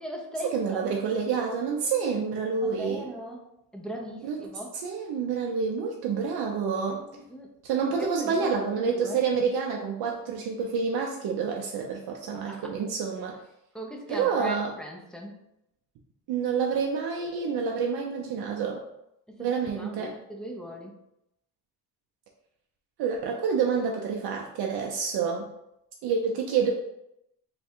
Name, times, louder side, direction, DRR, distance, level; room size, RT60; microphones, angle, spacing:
voice 1, 0.0-0.8 2.6-3.4 3.7-4.7 6.9-7.5 8.0-9.2 12.3-12.7 13.7-15.4 19.3-21.0, equal, ahead, 0 dB, 0.5 m, -39 dB
voice 2, 0.5-3.0 4.2-4.4 4.8-7.0 7.6-13.3 14.1-14.7 16.3-18.8 19.4-20.1 23.0-25.5 26.0-26.7, right 6 dB, 65° right, 0 dB, 0.6 m, -28 dB
3.3 x 2.3 x 4.3 m, 0.82 s
cardioid pair, 135°, 42 cm